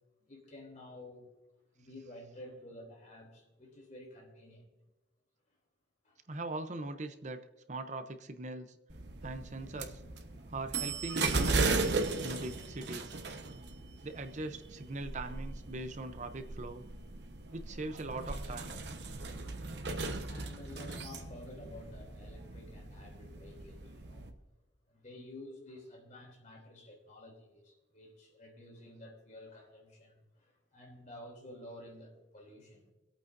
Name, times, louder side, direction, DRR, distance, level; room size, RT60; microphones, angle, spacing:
voice 1, 0.3-1.2 1.7-4.7 6.0-6.2 20.3-24.3 24.9-32.9, left 1 dB, 45° left, 1 dB, 3.3 m, -51 dB
voice 2, 6.3-8.8 9.2-10.0 10.5-13.2 14.0-16.8 17.5-18.8, right 2 dB, 40° right, 8 dB, 0.7 m, -41 dB
sound 1, 8.9-24.3, right 3 dB, 70° right, 1.2 m, -37 dB
25.0 x 8.7 x 2.7 m, 1.1 s
head